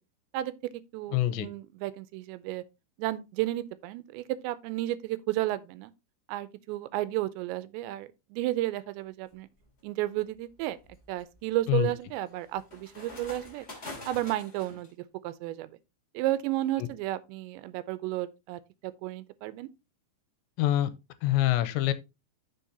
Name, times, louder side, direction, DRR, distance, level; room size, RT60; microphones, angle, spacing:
voice 1, 0.3-2.6 3.0-5.9 6.3-9.5 9.8-10.8 11.1-13.7 14.1-14.9 15.2-15.8 16.1-19.7, right 15 dB, 85° right, 2.9 m, -33 dB
voice 2, 1.1-1.5 11.7-11.9 16.8-16.9 20.6-20.9 21.2-21.9, left 14 dB, 85° left, 3.0 m, -25 dB
sound 1, 9.3-9.7 10.3-14.9, left 2 dB, 25° left, 1.6 m, -46 dB
10.0 x 6.5 x 2.8 m
omnidirectional pair, 5.1 m